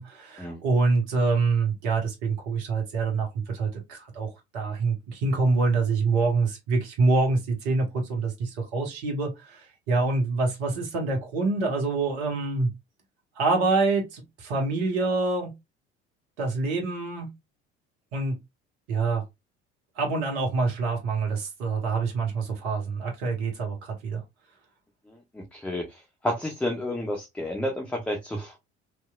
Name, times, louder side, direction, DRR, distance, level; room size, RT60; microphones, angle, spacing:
voice 1, 0.0-12.7 13.4-15.5 16.4-17.3 18.1-18.4 18.9-19.2 20.0-24.2, right 3 dB, 65° right, 1.0 m, -26 dB
voice 2, 25.5-25.8 26.2-28.6, left 1 dB, 5° left, 0.5 m, -30 dB
2.9 x 2.2 x 2.2 m
figure-of-eight pair, 60°, 34 cm